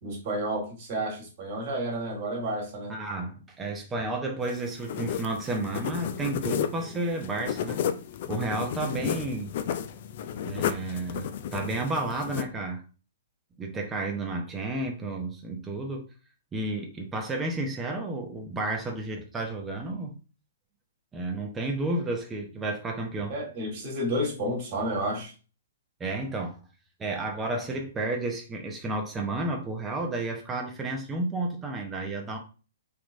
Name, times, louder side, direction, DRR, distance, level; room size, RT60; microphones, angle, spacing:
voice 1, 0.0-2.9 23.3-25.3, right 1 dB, 45° right, 1.5 m, -31 dB
voice 2, 2.9-7.8 8.3-9.5 10.4-12.8 13.6-16.0 16.5-20.2 21.1-23.3 26.0-26.6 27.0-32.4, right 2 dB, 15° right, 0.7 m, -31 dB
sound 1, 4.4-12.4, left 9 dB, 50° left, 0.4 m, -33 dB
3.3 x 3.0 x 2.5 m
figure-of-eight pair, 115°, 0 cm